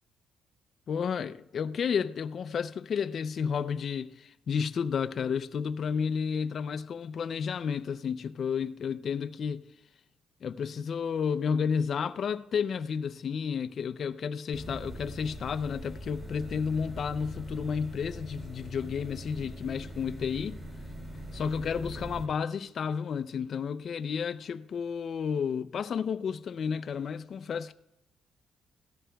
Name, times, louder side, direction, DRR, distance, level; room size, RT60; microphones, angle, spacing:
voice 1, 0.9-9.6 10.4-20.6 21.3-27.7, left 6 dB, 55° left, 0.5 m, -31 dB
sound 1, 14.5-22.3, equal, 30° right, 3.9 m, -42 dB
17.5 x 13.5 x 2.3 m
cardioid pair, 90°, 0 cm